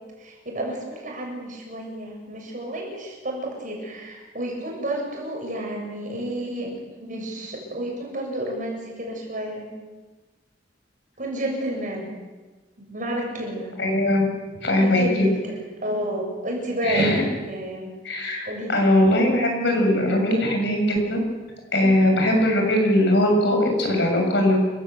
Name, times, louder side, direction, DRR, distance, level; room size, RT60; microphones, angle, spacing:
voice 1, 0.2-9.7 11.2-12.1 12.8-13.7 14.8-17.9 18.5-18.8 21.8-22.0, right 1 dB, 45° right, 0 dB, 7.3 m, -30 dB
voice 2, 13.8-14.2 14.6-15.3 16.8-17.2 18.0-21.2 21.7-24.6, left 1 dB, 65° left, 2 dB, 7.1 m, -20 dB
28.5 x 15.5 x 8.3 m, 1.3 s
head